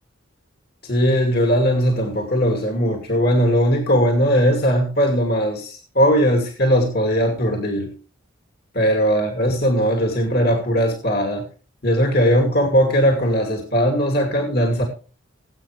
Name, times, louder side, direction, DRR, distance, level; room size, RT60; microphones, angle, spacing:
voice 1, 0.8-7.9 8.7-11.4 11.8-14.8, equal, 50° left, 3 dB, 2.5 m, -19 dB
18.5 x 8.6 x 3.2 m, 0.36 s
head